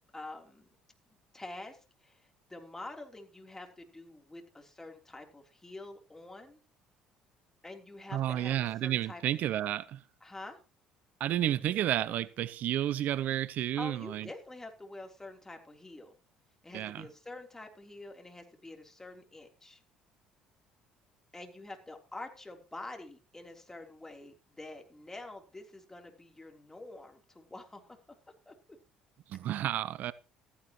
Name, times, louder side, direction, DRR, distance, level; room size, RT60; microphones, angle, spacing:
voice 1, 0.1-0.7 1.3-6.6 7.6-9.2 10.2-10.6 13.8-16.2 16.6-19.8 21.3-27.8 28.5-28.6, left 2 dB, 15° left, 3.4 m, -47 dB
voice 2, 8.1-10.0 11.2-14.3 16.7-17.0 29.3-30.1, right 12 dB, 60° right, 0.5 m, -31 dB
15.0 x 14.0 x 3.0 m
hypercardioid pair, 60°, 3 cm